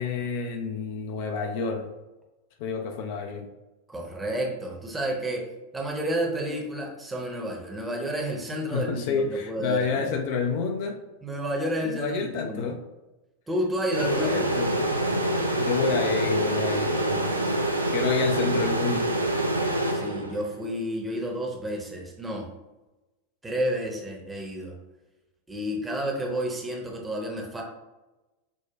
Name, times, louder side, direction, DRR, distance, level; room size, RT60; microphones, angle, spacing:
voice 1, 0.0-1.9 2.6-3.5 8.7-11.0 11.9-12.8 14.0-14.9 15.6-17.4 17.9-19.2, left 5 dB, 50° left, 3 dB, 0.4 m, -29 dB
voice 2, 3.9-5.5 5.7-10.1 11.2-12.7 13.5-14.5 19.9-22.5 23.4-24.8 25.5-27.6, equal, 10° right, 0 dB, 0.8 m, -30 dB
sound 1, 13.9-20.6, right 1 dB, 85° right, 0.4 m, -26 dB
6.0 x 2.3 x 2.4 m, 1.1 s
figure-of-eight pair, 90°, 0 cm